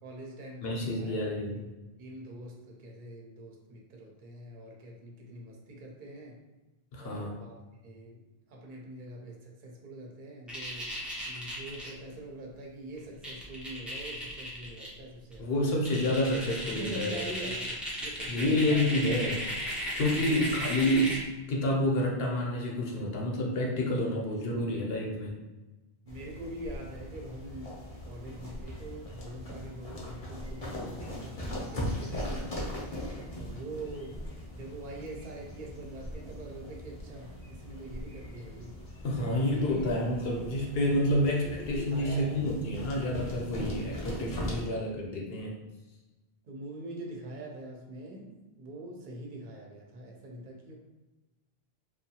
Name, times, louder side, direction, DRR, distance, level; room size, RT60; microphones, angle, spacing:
voice 1, 0.0-1.2 2.0-6.4 7.0-7.6 7.8-8.2 8.5-10.9 11.2-15.5 16.8-18.7 20.2-20.5 20.7-20.8 26.0-33.0 33.4-34.3 34.5-38.8 39.2-39.9 40.2-40.5 41.2-42.5 44.5-44.7 46.5-50.8, right 1 dB, 55° right, 0 dB, 0.7 m, -44 dB
voice 2, 0.6-1.7 6.9-7.4 15.4-17.2 18.3-19.4 20.0-21.2 21.5-25.4 39.0-45.5, left 1 dB, 70° left, -1 dB, 0.8 m, -29 dB
sound 1, 10.5-11.9 13.0-13.1 13.2-14.9 15.3-15.4 15.9-21.3, equal, ahead, 0.4 m, -36 dB
sound 2, 26.1-44.7, left 1 dB, 40° left, 0.6 m, -40 dB
2.6 x 2.2 x 2.7 m, 1.1 s
omnidirectional pair, 1.0 m